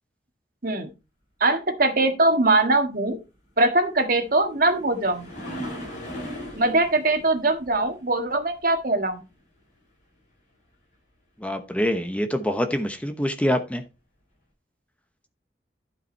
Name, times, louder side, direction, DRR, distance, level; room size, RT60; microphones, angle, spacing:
voice 1, 1.4-3.2 3.6-5.3 6.6-9.2, right 2 dB, 55° right, 1.7 m, -22 dB
sound 1, 3.9-9.2 13.1-13.2 13.8-13.9, equal, 45° left, 5.7 m, -38 dB
voice 2, 11.4-13.8, equal, 10° left, 0.9 m, -25 dB
11.5 x 5.3 x 4.5 m
head